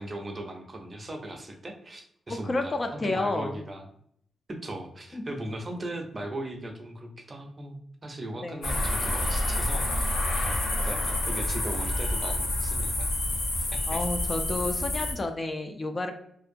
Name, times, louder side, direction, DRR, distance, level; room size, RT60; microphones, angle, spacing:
voice 1, 0.0-3.9 4.5-13.1 13.9-14.1, right 1 dB, 35° right, 3 dB, 0.5 m, -38 dB
voice 2, 2.3-3.6 5.1-5.2 8.4-8.7 13.9-16.1, left 2 dB, 40° left, 5 dB, 0.3 m, -30 dB
sound 1, 8.6-15.1, left 1 dB, 80° left, 0.7 m, -28 dB
2.6 x 2.1 x 2.5 m, 0.68 s
cardioid pair, 75°, 0 cm